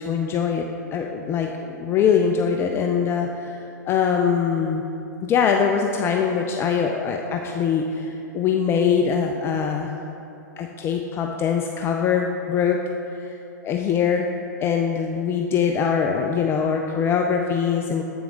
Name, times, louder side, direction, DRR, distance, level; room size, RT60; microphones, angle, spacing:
voice 1, 0.0-4.8 5.2-9.9 10.6-12.8 13.1-13.4 13.6-14.3 14.6-18.0, left 7 dB, 25° left, 3 dB, 0.4 m, -23 dB
8.0 x 5.9 x 3.7 m, 2.9 s
hypercardioid pair, 110°, 10 cm